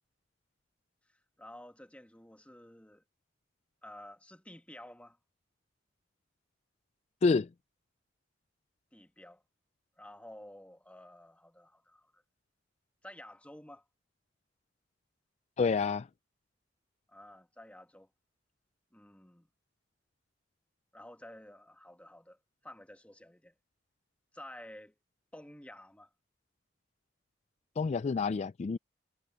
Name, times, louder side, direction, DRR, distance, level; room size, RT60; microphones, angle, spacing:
voice 1, 1.4-3.0 3.8-5.2 8.9-9.4 10.0-12.2 13.0-13.8 17.1-18.1 18.9-19.5 20.9-22.4 22.6-23.5 24.3-24.9 25.3-26.1, left 1 dB, 5° left, 1.8 m, -51 dB
voice 2, 15.6-16.1 27.8-28.8, left 4 dB, 35° left, 0.3 m, -28 dB
head